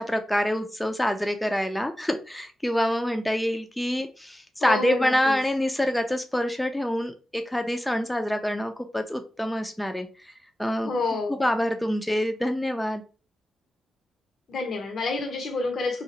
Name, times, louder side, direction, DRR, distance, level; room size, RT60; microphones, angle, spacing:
voice 1, 0.0-10.1 10.6-10.9 11.4-13.0, left 1 dB, 5° left, 0.4 m, -26 dB
voice 2, 4.6-5.4 10.8-11.4 14.5-16.0, left 3 dB, 55° left, 0.7 m, -28 dB
2.8 x 2.4 x 3.9 m
cardioid pair, 90°, 0 cm